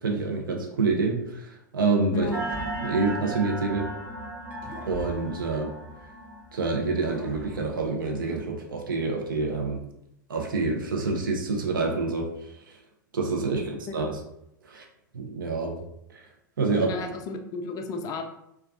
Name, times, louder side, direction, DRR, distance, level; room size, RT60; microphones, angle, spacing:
voice 1, 0.0-2.3 2.8-3.9 4.9-5.7 6.5-9.8 10.3-12.3 12.7-12.8 13.1-14.2 14.7-14.8 15.1-15.8 16.1-16.3 16.6-16.9, right 3 dB, 80° right, 1 dB, 0.6 m, -27 dB
sound 1, 2.2-4.1 4.6-6.5 7.0-8.7, right 2 dB, 50° right, 0.9 m, -45 dB
sound 2, 2.3-7.9, right 1 dB, 15° right, 0.7 m, -36 dB
voice 2, 13.5-14.0 16.7-18.2, left 4 dB, 35° left, 5 dB, 0.4 m, -33 dB
2.3 x 2.2 x 2.4 m, 0.81 s
hypercardioid pair, 100°, 11 cm